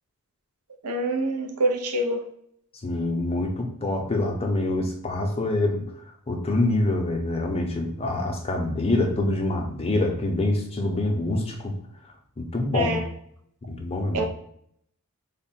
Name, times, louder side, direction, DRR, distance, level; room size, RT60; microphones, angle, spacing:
voice 1, 0.8-2.3 12.7-13.0 14.1-14.3, right 1 dB, 85° right, 5 dB, 0.6 m, -25 dB
voice 2, 2.8-5.9 6.3-11.8 12.4-13.0 13.7-14.3, left 2 dB, 25° left, 3 dB, 0.6 m, -25 dB
3.6 x 2.1 x 4.1 m, 0.70 s
head